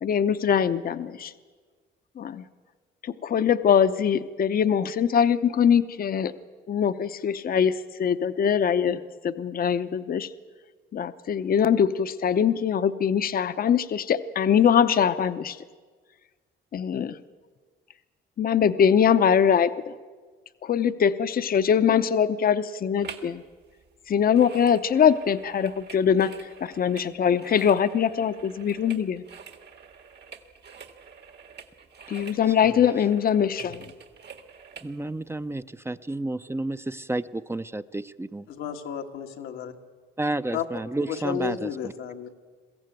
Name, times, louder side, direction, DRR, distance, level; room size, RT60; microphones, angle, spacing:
voice 1, 0.0-1.3 2.2-2.4 3.0-6.3 6.7-10.3 10.9-15.6 16.7-17.2 18.4-20.0 20.6-23.4 24.1-29.2 32.1-33.9, left 8 dB, 45° left, 12 dB, 0.8 m, -22 dB
sound 1, 23.0-23.4 23.6-34.9 35.4-35.5, right 6 dB, 60° right, 1.8 m, -46 dB
voice 2, 34.8-38.5 40.2-41.9, right 2 dB, 10° right, 12 dB, 0.6 m, -31 dB
voice 3, 38.5-39.7 40.5-40.6 41.1-42.3, left 8 dB, 90° left, 4 dB, 1.6 m, -32 dB
22.0 x 15.0 x 9.2 m, 1.5 s
cardioid pair, 90°, 20 cm